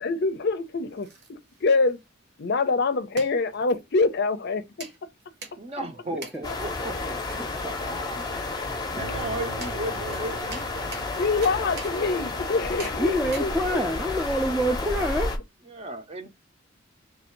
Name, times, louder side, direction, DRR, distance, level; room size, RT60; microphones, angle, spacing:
voice 1, 0.0-2.0 2.4-4.9 6.5-6.6 7.0-7.1 8.1-8.5 11.2-13.8, left 3 dB, 55° left, 0.5 m, -26 dB
sound 1, 0.6-15.5, right 4 dB, 55° right, 1.0 m, -46 dB
voice 2, 5.6-8.3 8.9-10.7 15.7-16.3, right 1 dB, 30° right, 0.7 m, -35 dB
voice 3, 6.1-6.5 6.8-7.7 9.4-9.5 13.0-15.4, equal, 5° right, 0.4 m, -28 dB
sound 2, 6.4-15.4, left 3 dB, 20° left, 0.7 m, -31 dB
Acoustic guitar, 9.0-14.2, right 1 dB, 75° right, 1.4 m, -44 dB
3.2 x 2.6 x 4.4 m
head